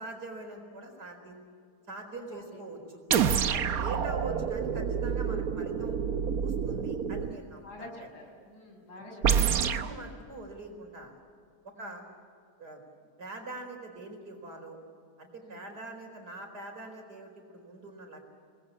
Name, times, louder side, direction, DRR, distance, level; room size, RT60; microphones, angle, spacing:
voice 1, 0.0-1.4 1.9-3.0 3.5-5.9 6.4-8.1 9.5-11.2 11.6-12.0 12.6-12.8 13.2-14.8 15.2-18.2, right 2 dB, 90° right, 3 dB, 5.1 m, -43 dB
sound 1, 3.1-7.4 9.2-9.9, right 7 dB, 70° right, 1.4 m, -28 dB
voice 2, 7.6-10.1 11.8-12.0 15.4-15.7, left 1 dB, 90° left, 1 dB, 6.8 m, -49 dB
27.5 x 20.5 x 8.6 m, 2.3 s
omnidirectional pair, 1.7 m